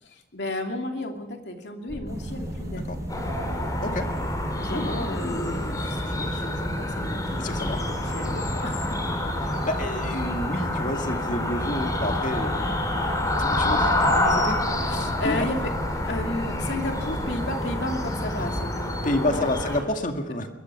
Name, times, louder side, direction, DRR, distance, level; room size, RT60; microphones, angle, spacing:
voice 1, 0.0-2.8 4.5-9.0 14.9-19.5, left 1 dB, 75° left, 3 dB, 2.8 m, -33 dB
sound 1, 1.9-17.2, right 1 dB, 40° right, 3.6 m, -42 dB
sound 2, 2.1-18.6, equal, 20° right, 5.7 m, -35 dB
sound 3, 3.1-19.8, left 1 dB, 20° left, 2.9 m, -28 dB
voice 2, 4.7-5.8 7.4-7.8 9.4-12.7 13.4-14.6 15.2-15.5 19.0-20.5, left 1 dB, 45° left, 5 dB, 2.1 m, -29 dB
22.5 x 21.5 x 6.0 m, 1.1 s
head